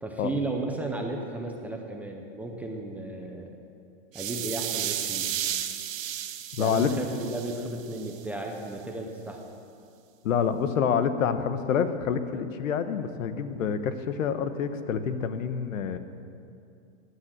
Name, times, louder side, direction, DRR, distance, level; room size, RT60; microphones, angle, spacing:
voice 1, 0.0-3.5 4.1-5.3 6.6-9.4, right 2 dB, 5° right, 1 dB, 0.3 m, -34 dB
sound 1, 4.1-8.2, right 11 dB, 85° right, 1.4 m, -33 dB
voice 2, 6.6-6.9 10.2-16.0, left 7 dB, 90° left, 10 dB, 1.2 m, -27 dB
16.5 x 9.8 x 7.3 m, 2.5 s
supercardioid pair, 155°, 38 cm